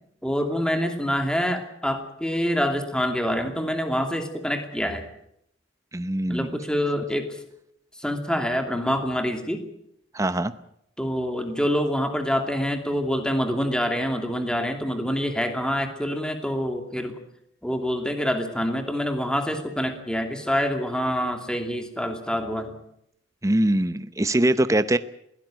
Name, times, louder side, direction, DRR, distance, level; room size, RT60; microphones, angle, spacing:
voice 1, 0.2-5.0 6.3-7.4 8.0-9.6 11.0-17.2 17.6-22.7, equal, 5° left, 6 dB, 2.6 m, -26 dB
voice 2, 5.9-6.5 10.1-10.5 23.4-25.0, right 1 dB, 15° right, 13 dB, 0.8 m, -22 dB
21.5 x 16.5 x 9.1 m, 0.75 s
head